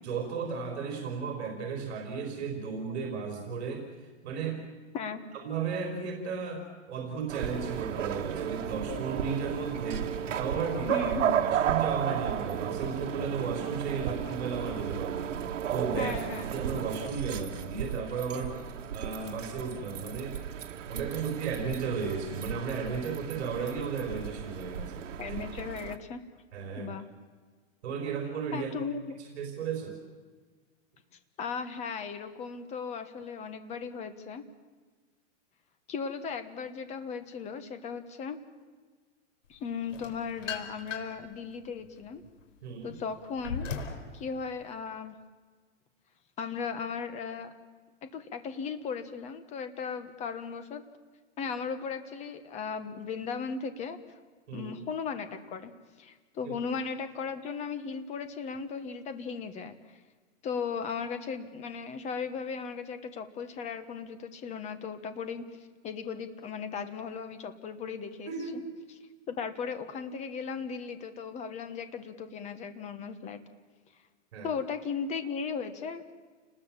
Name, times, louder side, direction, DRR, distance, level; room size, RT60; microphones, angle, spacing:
voice 1, 0.0-4.6 5.3-15.3 15.7-16.2 16.5-18.6 18.9-20.4 20.9-25.4 26.5-26.9 27.8-28.8 29.2-30.0 42.6-42.9 54.5-54.7 56.4-56.5 68.3-68.6 74.3-74.5, right 5 dB, 60° right, 3 dB, 4.5 m, -34 dB
sound 1, 7.3-26.0, right 9 dB, 75° right, 1.8 m, -34 dB
voice 2, 10.9-11.5 16.0-16.5 25.2-26.2 26.8-27.1 28.5-29.2 31.4-34.4 35.9-38.4 39.5-42.2 42.8-43.7 44.1-45.1 46.4-47.5 48.0-50.8 51.4-54.0 54.5-55.7 56.0-59.8 60.4-65.4 65.8-68.3 69.3-73.4 74.4-76.1, left 5 dB, 20° left, 10 dB, 1.2 m, -36 dB
sound 2, 39.9-41.3 41.8-44.1, left 6 dB, 80° left, 4.1 m, -38 dB
29.5 x 20.0 x 7.4 m, 1.4 s
supercardioid pair, 160°, 38 cm